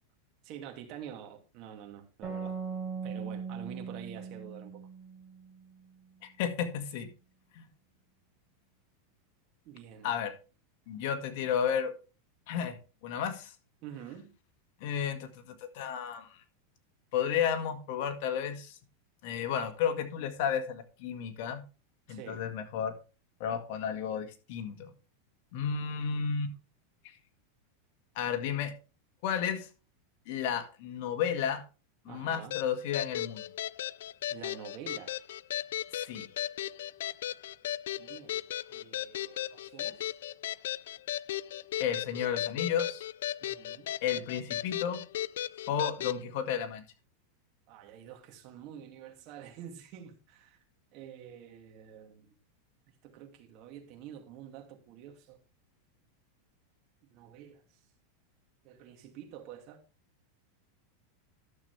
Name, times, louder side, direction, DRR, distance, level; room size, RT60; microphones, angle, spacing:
voice 1, 0.4-2.6 3.0-4.9 9.6-10.2 13.8-14.3 22.1-22.4 32.1-32.6 34.3-35.2 38.0-38.3 38.7-40.1 43.4-43.9 45.7-45.8 47.7-50.6 50.9-52.3 52.9-55.4 57.1-57.8 58.6-59.8, right 9 dB, 45° right, 2.3 m, -48 dB
sound 1, 2.2-5.7, right 5 dB, 15° right, 4.2 m, -39 dB
voice 2, 6.2-7.1 7.5-7.6 10.0-10.3 10.9-11.9 12.5-12.8 13.0-13.5 14.8-16.3 17.1-18.8 19.2-21.6 22.1-22.9 23.4-24.9 25.5-26.5 28.1-28.7 29.2-29.7 30.3-31.6 32.0-33.4 36.0-36.2 41.8-43.0 44.0-45.0 45.7-46.8, left 8 dB, 60° left, 1.8 m, -32 dB
sound 2, 32.5-46.2, left 12 dB, 80° left, 0.3 m, -36 dB
11.5 x 7.1 x 3.3 m
supercardioid pair, 130°, 0 cm